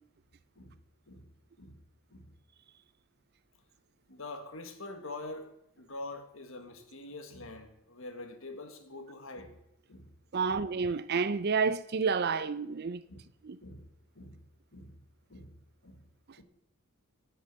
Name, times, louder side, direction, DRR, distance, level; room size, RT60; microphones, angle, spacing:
voice 1, 4.1-5.5 5.8-9.5 9.9-10.1 10.4-10.6 13.1-13.2 13.6-13.9 14.1-14.4 14.7-15.0 15.3-15.6 15.8-16.0 16.4-16.5, left 2 dB, 65° left, 1.6 m, -45 dB
voice 2, 10.3-13.0 13.4-13.6, right 5 dB, 45° right, 0.5 m, -29 dB
10.0 x 6.2 x 8.2 m
head